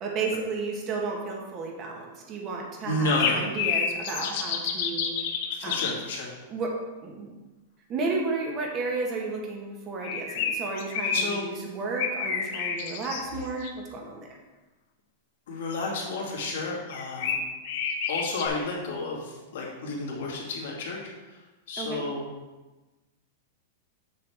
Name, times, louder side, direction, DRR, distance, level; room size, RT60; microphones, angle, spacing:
voice 1, 0.0-5.2 5.6-5.9 6.5-7.3 7.9-14.4 21.8-22.0, right 3 dB, 30° right, 0 dB, 1.5 m, -33 dB
voice 2, 2.8-3.5 5.5-6.3 11.1-11.4 15.5-17.4 18.1-21.0 21.3-21.4 21.7-22.3, left 2 dB, 75° left, -3 dB, 2.3 m, -31 dB
sound 1, 3.0-5.9 10.0-11.2 12.0-13.7 16.9-18.5, left 7 dB, 55° left, 0.8 m, -29 dB
7.0 x 6.8 x 3.5 m, 1.2 s
supercardioid pair, 150°, 0 cm